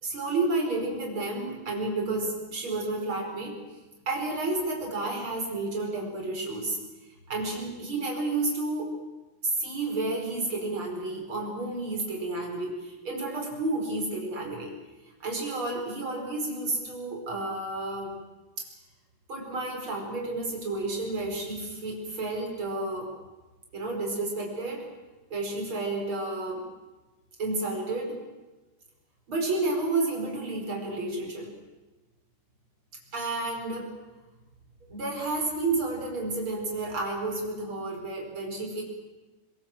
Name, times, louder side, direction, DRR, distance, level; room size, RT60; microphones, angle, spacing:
voice 1, 0.0-3.6 4.1-6.8 7.3-8.9 9.4-14.7 15.2-18.2 18.6-18.7 19.3-23.1 23.7-24.9 25.3-26.6 27.4-28.2 29.3-31.5 33.1-33.9 34.8-38.8, right 2 dB, 30° right, 1 dB, 5.8 m, -31 dB
25.0 x 22.0 x 7.8 m, 1.2 s
omnidirectional pair, 5.0 m